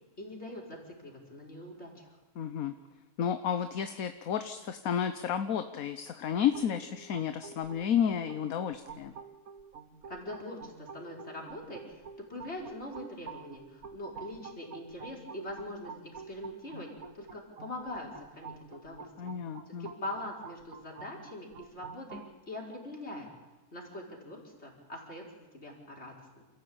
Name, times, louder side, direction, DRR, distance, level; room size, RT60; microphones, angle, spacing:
voice 1, 0.2-2.1 10.1-12.0 12.3-16.9 17.1-19.3 19.7-22.2 22.5-23.3 23.7-26.5, left 1 dB, 45° left, -1 dB, 5.2 m, -43 dB
voice 2, 2.4-2.7 3.2-9.1 19.2-19.9, left 8 dB, 75° left, 9 dB, 1.3 m, -31 dB
sound 1, 6.5-22.3, right 5 dB, 75° right, 1.9 m, -49 dB
28.0 x 15.0 x 8.8 m, 1.2 s
omnidirectional pair, 1.5 m